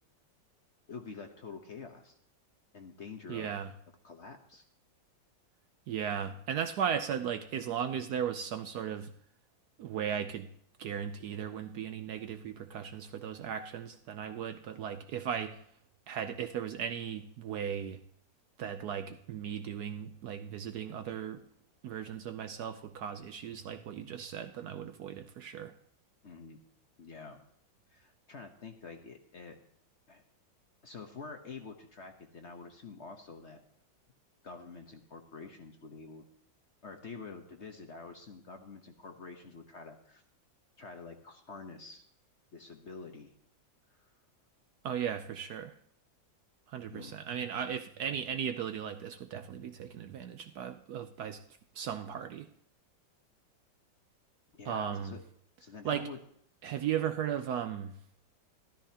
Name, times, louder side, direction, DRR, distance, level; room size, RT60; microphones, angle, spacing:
voice 1, 0.9-2.2 2.7-3.5 4.0-4.6 26.2-26.6 27.0-27.5 27.9-29.6 30.1-30.2 30.8-33.6 34.4-36.2 36.8-40.2 40.8-42.0 42.5-43.3 46.9-47.2 54.5-55.2 55.6-56.2, left 4 dB, 45° left, 5 dB, 1.1 m, -47 dB
voice 2, 3.3-3.7 5.9-9.1 9.8-10.5 10.8-15.6 16.1-18.0 18.6-21.4 21.8-25.7 44.8-45.7 46.7-51.4 51.7-52.5 54.6-55.2 55.8-56.1 56.6-58.0, right 8 dB, 70° right, 9 dB, 1.0 m, -36 dB
13.5 x 12.5 x 2.8 m, 0.66 s
omnidirectional pair, 2.0 m